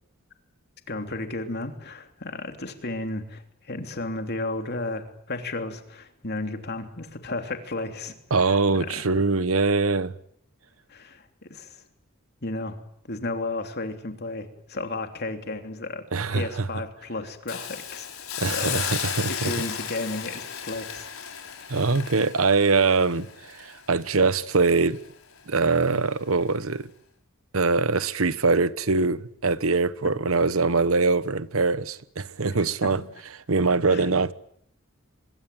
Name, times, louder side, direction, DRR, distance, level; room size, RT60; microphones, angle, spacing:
voice 1, 0.9-8.1 8.8-9.1 10.9-11.8 12.4-12.8 13.1-18.8 19.3-21.5 33.9-34.1, left 2 dB, 50° left, 3.1 m, -33 dB
voice 2, 8.3-10.1 16.1-16.7 18.4-19.5 21.7-25.0 25.5-26.9 27.5-33.0 33.3-34.3, right 4 dB, 80° right, 1.1 m, -23 dB
Hiss, 17.5-24.5 24.9-25.1, left 8 dB, 90° left, 5.0 m, -34 dB
24.0 x 22.5 x 9.2 m
head